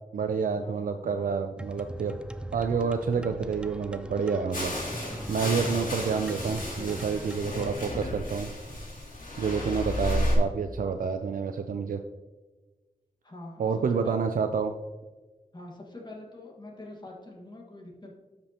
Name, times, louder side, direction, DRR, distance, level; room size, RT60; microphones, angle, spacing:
voice 1, 0.1-2.2 2.5-4.7 5.3-8.5 9.4-12.0 13.6-14.7, right 5 dB, 80° right, 6 dB, 0.4 m, -28 dB
sound 1, 1.6-7.9, right 1 dB, 5° right, 0.4 m, -41 dB
sound 2, 4.5-10.4, left 1 dB, 70° left, 2.6 m, -33 dB
voice 2, 13.2-14.3 15.5-18.2, left 2 dB, 30° left, -1 dB, 1.7 m, -44 dB
12.5 x 5.2 x 2.9 m, 1.3 s
wide cardioid pair, 105°, 14 cm